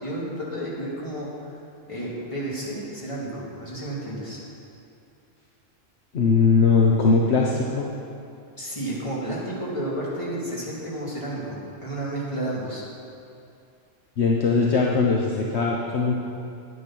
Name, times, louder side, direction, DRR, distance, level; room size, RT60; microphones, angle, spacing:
voice 1, 0.0-1.5 1.9-4.4 8.6-12.8, right 1 dB, 25° left, -6 dB, 2.6 m, -31 dB
voice 2, 6.1-7.9 14.2-16.2, left 4 dB, 60° left, -2 dB, 1.2 m, -20 dB
10.0 x 9.7 x 6.0 m, 2.5 s
omnidirectional pair, 1.3 m